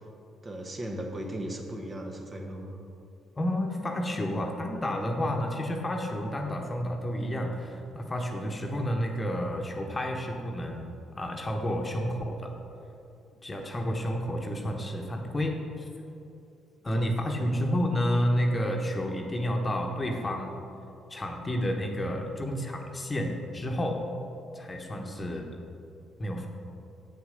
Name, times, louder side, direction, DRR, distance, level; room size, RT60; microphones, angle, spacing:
voice 1, 0.4-2.8 16.8-17.6 24.9-25.2, right 1 dB, 35° right, 1 dB, 1.3 m, -38 dB
voice 2, 3.4-10.9 11.1-12.5 13.4-15.9 16.8-20.5 21.1-24.0 24.5-25.5 26.2-26.5, equal, 30° left, 2 dB, 1.1 m, -30 dB
7.1 x 6.4 x 5.2 m, 2.7 s
hypercardioid pair, 55°, 0 cm